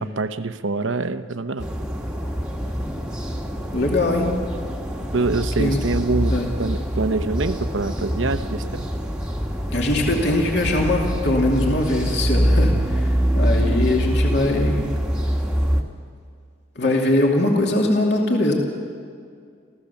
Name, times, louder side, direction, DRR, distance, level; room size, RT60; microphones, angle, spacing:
voice 1, 0.0-1.7 5.1-8.9, right 3 dB, 70° right, 11 dB, 0.9 m, -25 dB
sound 1, 1.6-15.8, equal, 5° right, 1.3 m, -24 dB
voice 2, 3.7-4.3 5.6-5.8 6.3-6.5 9.7-13.1 13.3-14.9 16.8-18.5, left 1 dB, 55° left, 0 dB, 2.6 m, -21 dB
28.5 x 15.0 x 7.1 m, 2.2 s
head